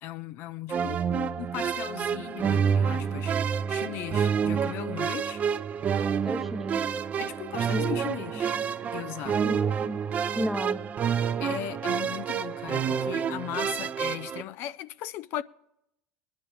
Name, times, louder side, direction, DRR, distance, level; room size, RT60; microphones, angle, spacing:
voice 1, 0.0-5.4 7.2-8.5 8.9-9.4 11.4-15.4, left 13 dB, 55° left, 0.4 m, -37 dB
sound 1, 0.7-14.4, right 7 dB, 35° right, 0.6 m, -28 dB
voice 2, 6.0-6.8 7.7-7.8 8.4-8.6 9.4-10.0 10.3-10.9, equal, 5° right, 0.8 m, -33 dB
19.0 x 10.5 x 3.4 m
supercardioid pair, 105°, 4 cm